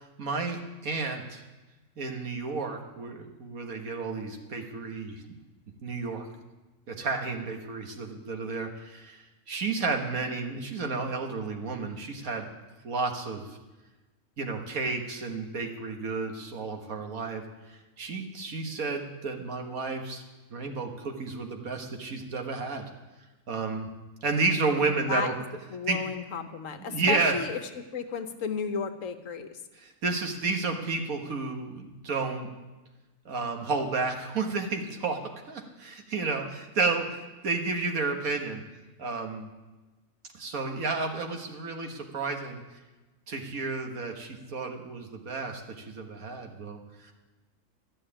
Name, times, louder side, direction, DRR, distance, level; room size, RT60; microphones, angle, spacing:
voice 1, 0.0-1.4 2.0-5.2 5.8-6.3 6.9-12.5 12.8-13.6 14.4-17.4 17.7-20.2 20.5-22.9 23.5-23.9 24.2-25.3 25.9-26.0 26.8-27.4 29.8-32.5 33.3-38.6 39.0-39.5 40.3-42.6 43.3-47.1, right 4 dB, 85° right, 3 dB, 1.9 m, -31 dB
voice 2, 24.8-25.3 25.7-29.6, left 6 dB, 70° left, 8 dB, 1.3 m, -34 dB
13.0 x 6.5 x 10.0 m, 1.1 s
omnidirectional pair, 1.4 m